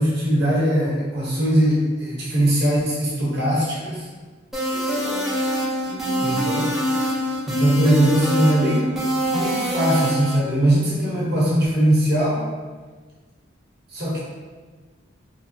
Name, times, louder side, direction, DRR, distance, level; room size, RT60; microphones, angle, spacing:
voice 1, 0.0-4.1 6.2-6.7 7.5-9.0 9.3-12.5 13.9-14.2, right 1 dB, 55° right, -6 dB, 0.9 m, -20 dB
sound 1, 4.5-10.4, equal, ahead, 0.5 m, -24 dB
voice 2, 4.7-6.4, left 1 dB, 30° right, -8 dB, 0.9 m, -36 dB
3.1 x 2.0 x 2.5 m, 1.4 s
head